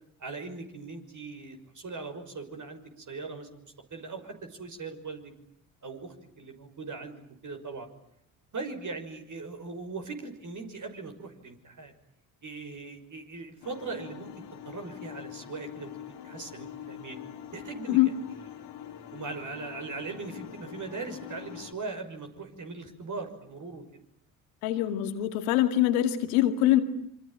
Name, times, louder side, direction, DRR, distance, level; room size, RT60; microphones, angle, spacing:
voice 1, 0.2-5.3 5.8-7.9 8.5-11.9 12.4-14.3 14.6-17.2 17.5-18.1 19.1-23.8, right 4 dB, 45° right, 5 dB, 6.1 m, -40 dB
sound 1, 13.6-21.7, left 10 dB, 70° left, 2.9 m, -44 dB
voice 2, 24.6-26.8, left 14 dB, 85° left, 8 dB, 2.4 m, -24 dB
27.5 x 24.0 x 9.0 m, 0.70 s
hypercardioid pair, 55°, 42 cm